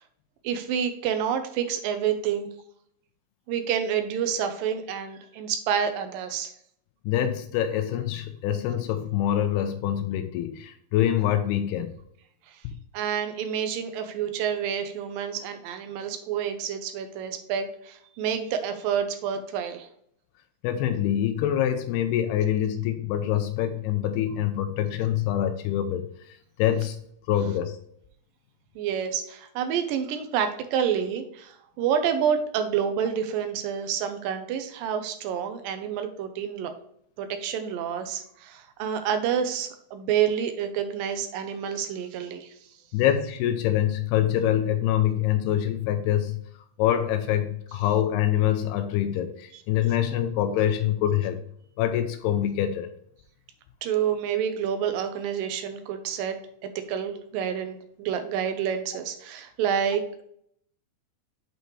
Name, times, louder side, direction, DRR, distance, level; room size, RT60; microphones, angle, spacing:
voice 1, 0.4-2.5 3.5-6.5 12.9-19.9 28.8-36.7 37.2-42.5 53.8-56.4 56.6-60.2, right 8 dB, 75° right, 7 dB, 2.2 m, -28 dB
voice 2, 7.0-11.9 20.6-26.1 26.6-27.0 27.3-27.8 42.9-46.4 46.8-51.4 51.8-52.9, left 11 dB, 90° left, 7 dB, 2.6 m, -25 dB
7.5 x 5.5 x 3.2 m, 0.69 s
omnidirectional pair, 4.6 m